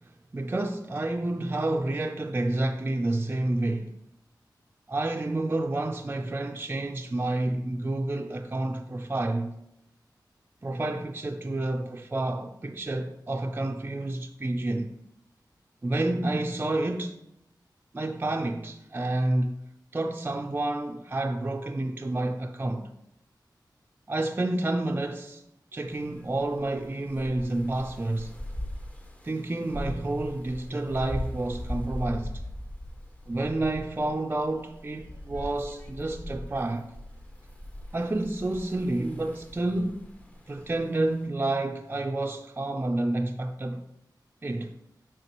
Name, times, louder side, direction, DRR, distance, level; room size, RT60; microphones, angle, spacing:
voice 1, 0.3-3.9 4.9-9.5 10.6-14.9 15.8-17.2 17.9-19.6 19.9-22.9 24.1-25.4 25.7-28.3 29.2-32.3 33.3-36.9 37.9-40.0 40.5-43.8 44.4-44.7, right 2 dB, 25° right, 0.4 m, -29 dB
sound 1, 25.9-41.3, left 1 dB, 20° left, 0.8 m, -40 dB
7.9 x 5.8 x 3.0 m
wide cardioid pair, 100°, 8 cm